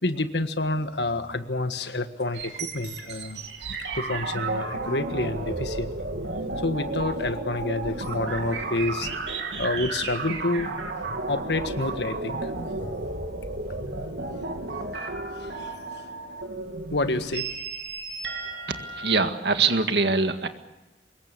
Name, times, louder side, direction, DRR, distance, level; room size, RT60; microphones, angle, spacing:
voice 1, 0.0-3.4 3.9-5.9 6.6-10.7 11.3-12.5 13.7-13.8 15.4-15.8 16.9-17.5, left 2 dB, 75° left, 9 dB, 1.6 m, -28 dB
sound 1, 2.2-19.1, right 3 dB, 90° right, 3.2 m, -33 dB
voice 2, 18.7-20.5, right 4 dB, 75° right, 7 dB, 1.9 m, -23 dB
25.0 x 21.5 x 6.9 m, 1.0 s
head